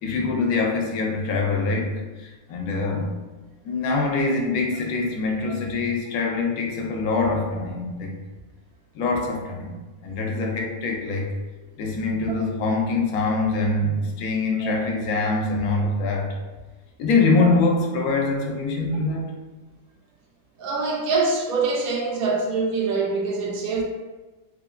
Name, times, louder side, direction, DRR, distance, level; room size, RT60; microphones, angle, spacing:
voice 1, 0.0-3.1 3.6-8.1 8.9-11.3 11.8-16.4 17.0-19.3, left 3 dB, 80° left, 0 dB, 1.0 m, -24 dB
voice 2, 20.6-23.8, right 4 dB, 80° right, -1 dB, 1.0 m, -24 dB
3.1 x 2.1 x 2.4 m, 1.2 s
omnidirectional pair, 1.5 m